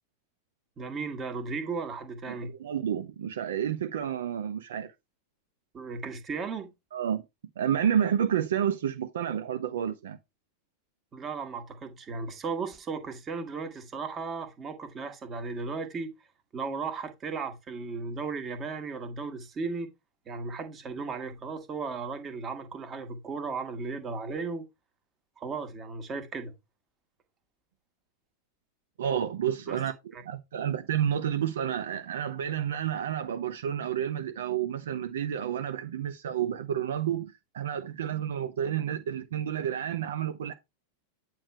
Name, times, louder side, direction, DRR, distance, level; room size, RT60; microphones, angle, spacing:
voice 1, 0.8-2.5 5.7-6.7 11.1-16.1 16.5-19.9 20.3-24.7 25.4-26.5 29.7-30.2, right 4 dB, 25° right, 1.5 m, -36 dB
voice 2, 2.3-4.9 6.9-7.2 7.6-10.2 29.0-29.9 30.2-40.5, right 9 dB, 60° right, 0.6 m, -30 dB
8.6 x 3.1 x 4.7 m
figure-of-eight pair, 90°, 0 cm